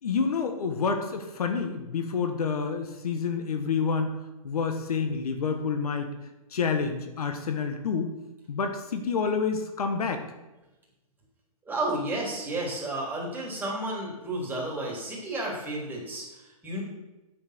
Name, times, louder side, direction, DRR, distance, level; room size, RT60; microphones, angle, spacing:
voice 1, 0.0-4.1 4.4-6.1 6.5-8.1 8.5-10.2, left 5 dB, 80° left, 6 dB, 1.6 m, -28 dB
voice 2, 11.7-16.8, right 1 dB, 10° right, -4 dB, 3.5 m, -32 dB
8.9 x 7.7 x 6.1 m, 1.0 s
hypercardioid pair, 135°, 19 cm